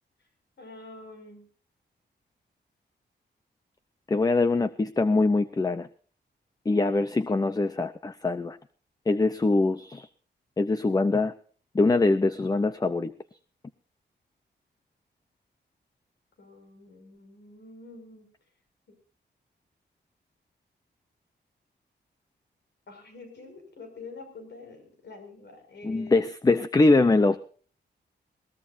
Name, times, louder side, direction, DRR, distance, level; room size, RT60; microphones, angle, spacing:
voice 1, 0.6-1.5 7.0-7.1 16.4-18.3 18.9-19.0 22.9-26.2, left 3 dB, 70° left, 5 dB, 6.1 m, -47 dB
voice 2, 4.1-5.9 6.7-8.6 9.1-10.1 10.6-11.3 11.7-13.1 25.8-27.4, left 3 dB, 20° left, 12 dB, 0.7 m, -23 dB
21.0 x 18.0 x 2.7 m, 0.43 s
wide cardioid pair, 125°, 18 cm